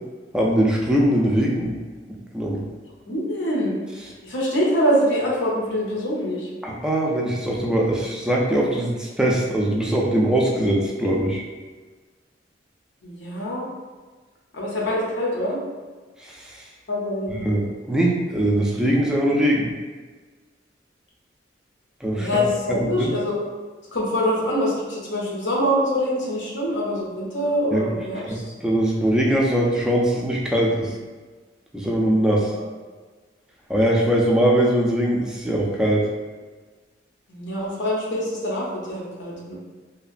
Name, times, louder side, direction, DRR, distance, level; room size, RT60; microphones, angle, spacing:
voice 1, 0.3-1.8 2.3-2.6 6.6-11.4 16.2-16.6 17.3-19.7 22.0-22.4 22.7-23.1 27.7-27.9 28.3-30.9 31.7-32.5 33.7-36.1, right 1 dB, 5° right, -3 dB, 0.3 m, -21 dB
voice 2, 3.1-3.7 4.2-6.5 13.0-13.6 14.5-15.6 16.9-17.4 22.1-23.3 23.9-28.4 32.1-32.7 37.3-39.6, equal, 75° left, -4 dB, 0.7 m, -24 dB
2.8 x 2.4 x 2.5 m, 1.4 s
head